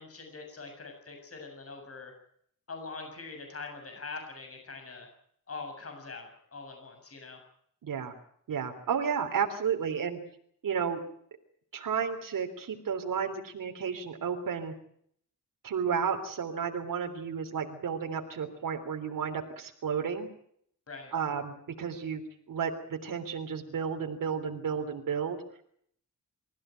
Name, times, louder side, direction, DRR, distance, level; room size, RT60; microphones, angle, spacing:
voice 1, 0.0-2.1 2.7-5.1 5.5-7.4 20.9-21.1, left 4 dB, 45° left, 4 dB, 7.2 m, -43 dB
voice 2, 7.8-8.1 8.5-10.2 10.6-11.0 11.7-14.7 15.6-20.3 21.1-22.2 22.5-25.4, right 6 dB, 85° right, 4 dB, 3.5 m, -32 dB
26.0 x 15.5 x 9.2 m, 0.66 s
wide cardioid pair, 130°, 32 cm